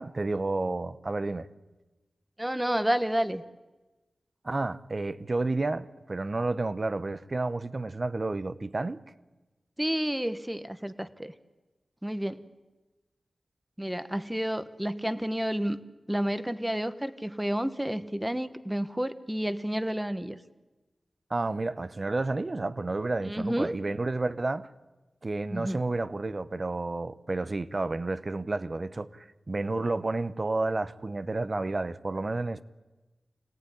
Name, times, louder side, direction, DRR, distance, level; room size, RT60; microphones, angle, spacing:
voice 1, 0.0-1.5 4.4-9.0 21.3-24.7 25.2-32.6, right 2 dB, 40° right, 0.9 m, -31 dB
voice 2, 2.4-3.4 9.8-11.3 12.0-12.4 13.8-15.8 16.1-20.4 23.2-23.8 25.5-25.8, equal, 10° right, 1.1 m, -30 dB
25.5 x 17.5 x 10.0 m
wide cardioid pair, 105°, 0 cm